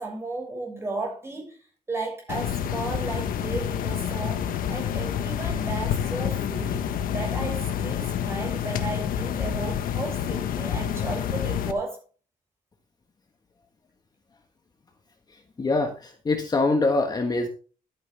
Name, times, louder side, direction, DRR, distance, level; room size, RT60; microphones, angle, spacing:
voice 1, 0.0-1.6 1.9-6.8 7.1-12.0, right 2 dB, 20° right, 6.2 m, -34 dB
sound 1, 2.3-11.7, left 9 dB, 90° left, 1.3 m, -28 dB
voice 2, 15.3-17.5, left 3 dB, 30° left, 1.5 m, -24 dB
13.0 x 9.3 x 3.5 m
cardioid pair, 125°, 14 cm